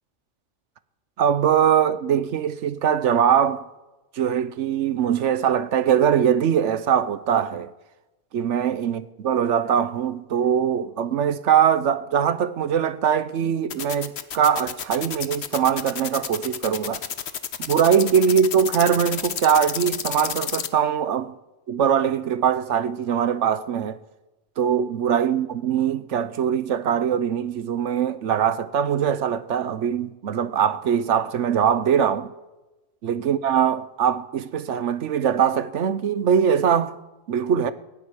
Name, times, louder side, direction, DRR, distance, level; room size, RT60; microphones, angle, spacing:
voice 1, 1.2-3.7 4.1-7.7 8.3-17.0 17.6-21.3 21.7-24.0 24.6-32.3 33.0-37.0 37.3-37.7, right 8 dB, 75° right, 1.1 m, -22 dB
sound 1, 13.7-20.7, left 8 dB, 60° left, 1.1 m, -30 dB
17.0 x 8.1 x 9.8 m
omnidirectional pair, 1.3 m